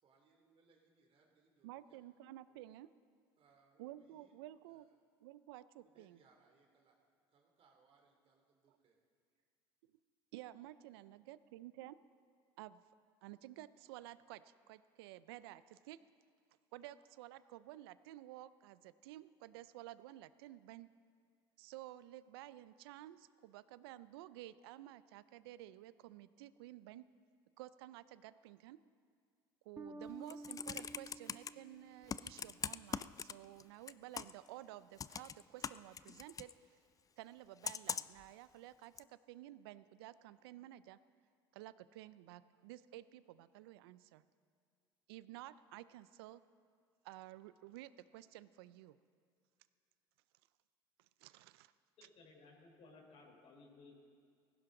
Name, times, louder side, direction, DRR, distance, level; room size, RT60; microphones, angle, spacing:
voice 1, 0.0-2.0 2.5-2.6 3.4-4.3 4.7-4.9 5.8-7.0 7.3-9.0 9.3-9.4, right 4 dB, 50° right, 2 dB, 2.9 m, -72 dB
voice 2, 1.6-2.9 3.8-4.9 5.2-6.2 8.7-8.8 10.3-12.0 12.6-12.8 13.2-16.0 16.7-20.9 21.6-27.1 27.6-28.8 29.6-36.5 37.2-41.0 41.5-44.2 45.1-46.4 47.0-49.0 51.2-51.7, right 15 dB, 80° right, 16 dB, 0.5 m, -53 dB
Bass guitar, 29.8-32.8, right 2 dB, 20° right, 1.0 m, -52 dB
Computer keyboard, 30.1-31.5 32.1-33.6 33.9-34.5 35.0-36.5 37.6-38.2 39.0-39.1, left 7 dB, 30° left, 0.4 m, -42 dB
voice 3, 52.0-54.0, left 3 dB, 55° left, -1 dB, 3.9 m, -60 dB
18.0 x 15.5 x 3.8 m, 2.2 s
hypercardioid pair, 75°, 13 cm